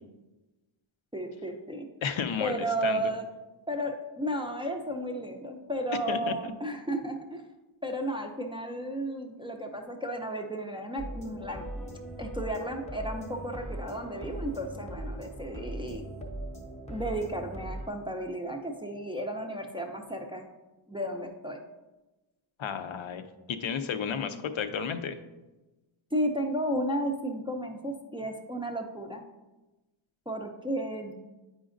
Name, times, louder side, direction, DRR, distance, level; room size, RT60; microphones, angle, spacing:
voice 1, 1.1-1.9 2.4-3.3 3.7-7.4 7.8-16.0 16.9-20.5 20.9-21.6 26.1-29.2 30.3-31.1, right 1 dB, 10° right, 3 dB, 0.4 m, -33 dB
voice 2, 2.0-2.5 2.8-3.0 6.1-6.3 22.6-25.2, left 7 dB, 70° left, 9 dB, 0.6 m, -32 dB
sound 1, 11.0-17.9, right 1 dB, 15° left, 0.7 m, -39 dB
8.7 x 5.0 x 2.5 m, 1.1 s
wide cardioid pair, 160°, 49 cm